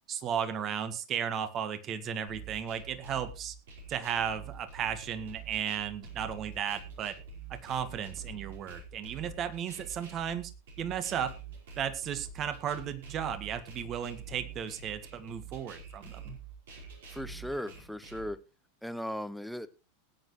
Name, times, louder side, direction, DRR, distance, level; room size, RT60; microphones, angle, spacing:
voice 1, 0.1-3.5 3.9-7.1 7.5-10.5 10.8-11.4 11.8-16.4, right 8 dB, 35° right, 1.8 m, -35 dB
sound 1, 2.3-18.3, right 5 dB, 65° right, 5.0 m, -46 dB
voice 2, 17.1-18.4 18.8-19.7, equal, ahead, 0.9 m, -37 dB
19.0 x 9.7 x 3.2 m
figure-of-eight pair, 90°, 0 cm